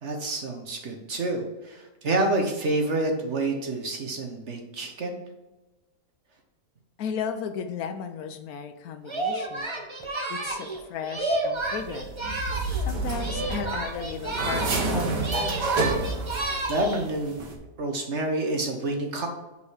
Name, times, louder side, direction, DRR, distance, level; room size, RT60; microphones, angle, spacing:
voice 1, 0.0-5.2 16.4-17.5 17.8-19.3, right 2 dB, 50° right, 3 dB, 1.0 m, -28 dB
voice 2, 7.0-9.7 10.3-12.1 12.8-15.7, left 7 dB, 70° left, 8 dB, 1.0 m, -35 dB
Singing, 9.0-12.9 13.1-14.9 15.2-17.1, right 2 dB, 30° right, 0.5 m, -31 dB
sound 1, 11.6-17.0 17.3-17.6, right 2 dB, 90° right, 1.7 m, -29 dB
5.4 x 4.8 x 4.9 m, 1.1 s
omnidirectional pair, 1.7 m